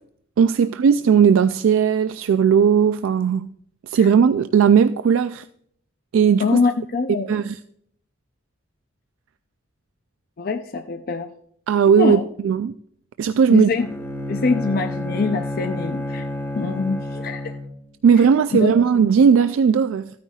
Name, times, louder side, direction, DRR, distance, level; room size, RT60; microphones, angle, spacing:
voice 1, 0.4-3.5 3.9-5.4 6.1-6.5 7.3-7.6 11.7-12.7 13.2-13.7 18.0-20.1, right 7 dB, 85° right, 0.3 m, -17 dB
voice 2, 6.4-7.4 10.4-11.3 11.8-12.2 13.5-13.9 14.3-16.3 16.6-17.5 18.5-19.0, left 4 dB, 50° left, 0.5 m, -24 dB
Bowed string instrument, 13.8-17.9, left 1 dB, 10° left, 0.8 m, -29 dB
13.5 x 9.3 x 2.4 m
head